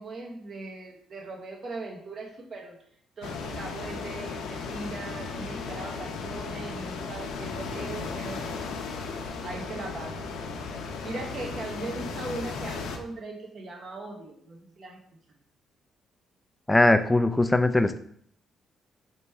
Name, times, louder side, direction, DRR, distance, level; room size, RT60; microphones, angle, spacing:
voice 1, 0.0-2.8 3.2-8.7 9.2-10.3 11.0-15.0, right 3 dB, 50° right, 1 dB, 1.0 m, -39 dB
sound 1, 3.2-13.0, left 4 dB, 85° left, 0.5 m, -35 dB
voice 2, 16.7-18.0, left 2 dB, 10° left, 10 dB, 0.4 m, -21 dB
3.5 x 3.1 x 4.3 m, 0.65 s
cardioid pair, 90°, 0 cm